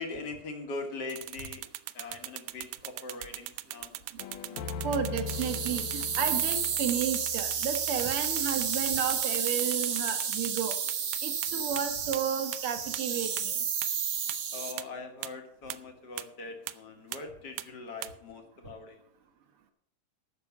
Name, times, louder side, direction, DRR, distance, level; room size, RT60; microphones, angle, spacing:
voice 1, 0.0-1.7 1.9-4.0 5.0-5.2 9.2-9.3 14.5-19.0, left 3 dB, 55° left, 4 dB, 1.1 m, -41 dB
sound 1, 1.1-11.5 11.8-11.9 12.1-12.2 12.5-12.6 12.9-13.0 13.4-13.5 13.8-13.9 14.3-14.4 14.8-14.9 15.2-15.3 15.7-15.8 16.2-16.3 16.7-16.8 17.1-17.2 17.6-17.7 18.0-18.1, right 16 dB, 90° right, 2.3 m, -39 dB
sound 2, 4.2-9.2, left 5 dB, 80° left, 2.5 m, -41 dB
voice 2, 4.8-10.8 11.2-13.6, right 8 dB, 55° right, 7 dB, 1.7 m, -32 dB
sound 3, 5.3-14.7, right 7 dB, 70° right, 1.1 m, -31 dB
14.0 x 6.1 x 7.2 m, 0.71 s
omnidirectional pair, 4.0 m